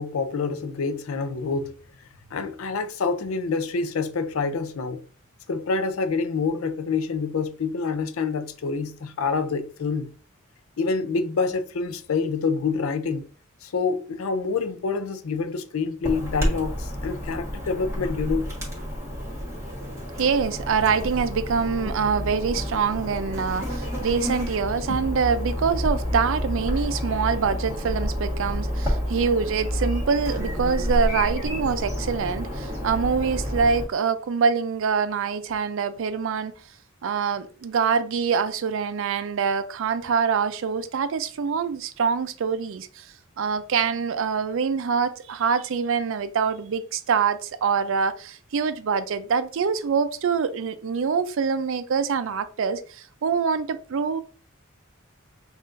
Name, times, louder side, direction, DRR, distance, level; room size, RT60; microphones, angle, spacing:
voice 1, 0.0-1.7 2.3-5.0 5.5-10.1 10.8-13.2 13.6-18.5 24.9-25.0, left 4 dB, 90° left, 0.5 m, -27 dB
Chirp tweet / Buzz, 16.0-33.9, equal, 15° right, 1.4 m, -29 dB
voice 2, 20.2-36.5 37.0-43.1 43.4-54.2, right 6 dB, 65° right, 0.4 m, -25 dB
5.5 x 2.5 x 2.5 m
head